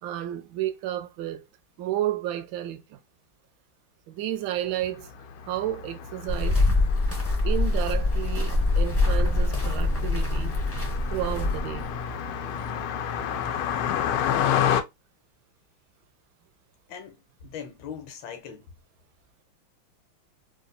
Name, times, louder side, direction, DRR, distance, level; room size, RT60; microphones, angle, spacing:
voice 1, 0.0-1.4 1.8-3.0 4.1-5.1 5.4-6.6 7.4-10.6 11.1-11.9, right 12 dB, 75° right, 1.3 m, -31 dB
Car passing by, 4.7-14.8, left 8 dB, 90° left, 1.4 m, -31 dB
sound 1, 6.3-11.9, left 2 dB, 20° left, 0.4 m, -24 dB
voice 2, 17.4-18.7, left 7 dB, 70° left, 1.5 m, -40 dB
4.0 x 2.3 x 2.5 m
omnidirectional pair, 2.2 m